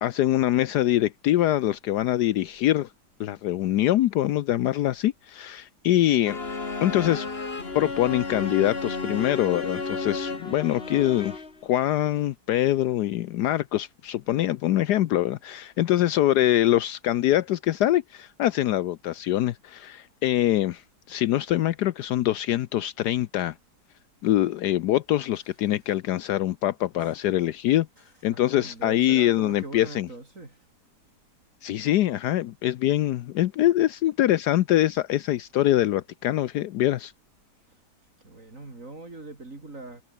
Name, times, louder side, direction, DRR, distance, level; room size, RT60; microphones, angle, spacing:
voice 1, 0.0-2.9 3.2-6.4 6.8-7.3 7.7-11.4 11.6-20.8 21.1-23.5 24.2-27.9 28.2-30.1 31.6-37.1, left 13 dB, 75° left, 1.2 m, -24 dB
sound 1, 6.3-11.7, left 3 dB, 35° left, 2.6 m, -32 dB
voice 2, 28.3-30.6 38.2-40.0, right 2 dB, 50° right, 4.5 m, -42 dB
omnidirectional pair, 1.8 m